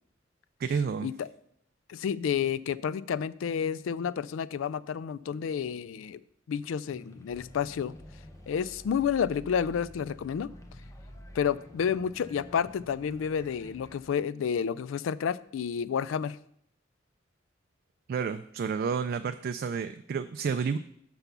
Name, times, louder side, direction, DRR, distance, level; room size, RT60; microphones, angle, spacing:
voice 1, 0.6-1.1 18.1-20.8, right 6 dB, 50° right, 9 dB, 0.3 m, -30 dB
voice 2, 1.9-6.2 6.5-7.9 8.5-10.5 11.3-16.4, left 7 dB, 80° left, 18 dB, 0.3 m, -30 dB
sound 1, 6.9-14.0, left 2 dB, 15° left, 0.6 m, -52 dB
sound 2, 7.3-14.1, equal, 15° right, 1.6 m, -52 dB
5.9 x 5.6 x 6.8 m, 0.71 s
head